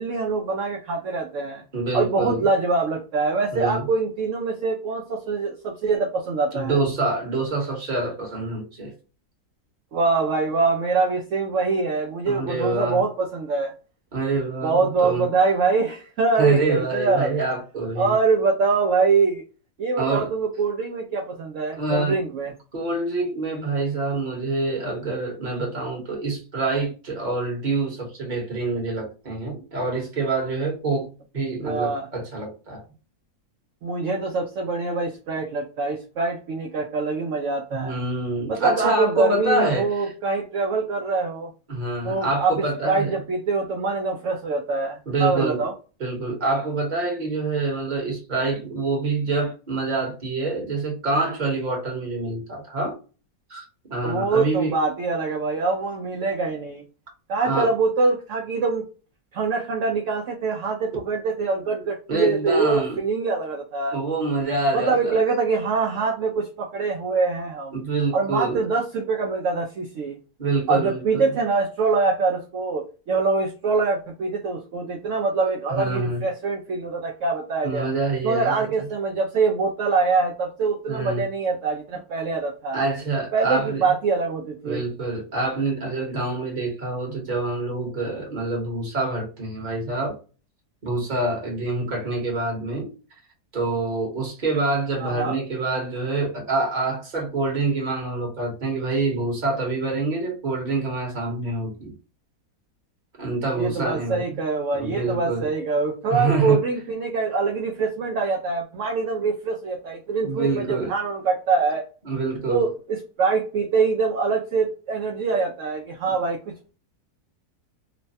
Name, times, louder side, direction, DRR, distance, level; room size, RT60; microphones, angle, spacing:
voice 1, 0.0-1.6 1.9-6.8 9.9-13.7 14.6-17.3 18.0-19.4 19.8-22.5 31.6-32.1 33.8-38.0 38.5-41.5 42.0-45.7 54.0-56.8 57.3-58.8 59.3-64.0 64.7-67.8 68.1-70.2 70.7-77.9 78.2-82.8 83.3-84.8 95.0-95.4 103.6-111.9 112.5-116.7, right 4 dB, 70° right, 0.7 m, -24 dB
voice 2, 1.7-2.5 3.5-3.9 6.5-8.9 12.3-13.0 14.1-15.3 16.4-18.2 20.0-20.3 21.7-22.2 22.7-31.1 31.3-32.8 37.7-39.9 41.7-43.1 45.1-45.7 46.0-52.9 53.5-53.6 53.9-54.8 57.4-57.7 62.1-63.0 63.9-65.2 67.7-68.6 70.4-71.3 75.7-76.2 77.6-78.9 80.9-81.2 82.7-83.8 84.6-90.1 90.8-92.9 93.5-102.0 103.2-104.4 104.7-105.5 106.1-106.6 110.2-110.9 112.0-112.7 116.0-116.1, right 3 dB, 35° right, 1.0 m, -26 dB
3.1 x 2.1 x 2.6 m
omnidirectional pair, 1.7 m